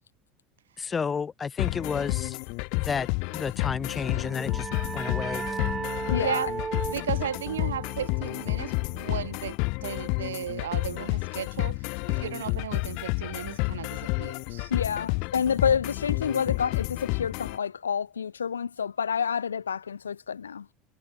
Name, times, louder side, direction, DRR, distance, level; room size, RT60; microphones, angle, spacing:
voice 1, 0.8-2.4 2.8-5.5, left 6 dB, 25° left, 2.2 m, -32 dB
sound 1, 1.6-17.6, left 34 dB, 60° left, 0.9 m, -30 dB
sound 2, 3.9-9.3, right 5 dB, 25° right, 2.3 m, -37 dB
voice 2, 6.1-6.5 14.7-20.7, left 7 dB, 85° left, 0.3 m, -28 dB
voice 3, 6.9-11.8 12.1-14.7, right 10 dB, 80° right, 0.7 m, -35 dB
hypercardioid pair, 75°, 0 cm